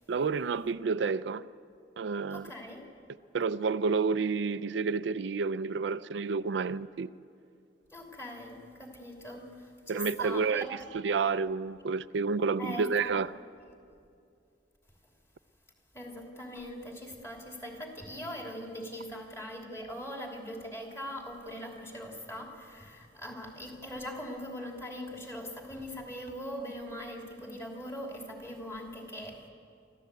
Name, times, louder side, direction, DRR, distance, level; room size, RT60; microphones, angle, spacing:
voice 1, 0.1-1.5 2.0-2.5 3.3-7.1 9.9-10.7 10.9-13.3, right 5 dB, 75° right, 13 dB, 0.4 m, -30 dB
voice 2, 2.3-2.9 7.9-10.9 12.6-13.1 15.9-29.5, equal, 15° left, 0 dB, 2.9 m, -41 dB
25.0 x 14.5 x 8.2 m, 2.4 s
head